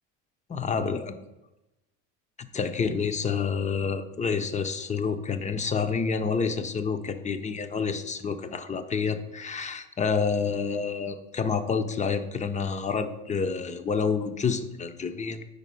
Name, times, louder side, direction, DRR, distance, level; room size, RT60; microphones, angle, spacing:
voice 1, 0.5-1.2 2.4-15.5, left 5 dB, 20° left, 10 dB, 0.5 m, -28 dB
5.2 x 4.4 x 5.5 m, 0.98 s
supercardioid pair, 85°, 38 cm